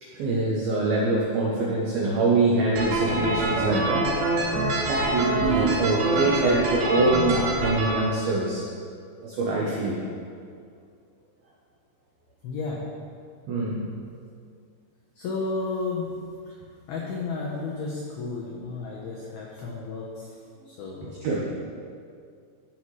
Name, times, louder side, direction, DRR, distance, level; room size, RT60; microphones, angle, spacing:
voice 1, 0.0-4.1 4.9-8.7 9.2-10.0 13.5-13.8 21.2-21.4, right 2 dB, 80° right, -4 dB, 2.1 m, -24 dB
sound 1, 2.8-7.9, right 2 dB, 60° right, 3.1 m, -25 dB
voice 2, 12.4-12.9 15.2-16.1 16.5-16.6 16.9-20.3 20.7-21.1, left 3 dB, 85° left, -3 dB, 2.1 m, -32 dB
16.0 x 5.6 x 3.2 m, 2.3 s
omnidirectional pair, 5.7 m